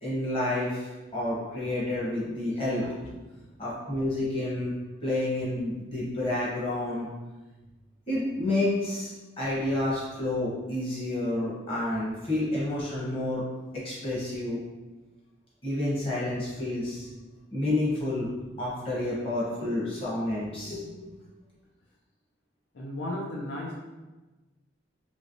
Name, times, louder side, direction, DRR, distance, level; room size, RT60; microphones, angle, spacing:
voice 1, 0.0-2.8 3.6-4.7 5.0-7.1 8.1-9.1 9.4-13.4 13.7-14.6 15.6-17.1 17.5-18.3 18.6-21.1, left 1 dB, 30° left, -8 dB, 1.0 m, -29 dB
voice 2, 2.8-3.1 22.7-23.7, left 1 dB, 80° left, -3 dB, 0.5 m, -35 dB
3.1 x 3.0 x 2.6 m, 1.2 s
head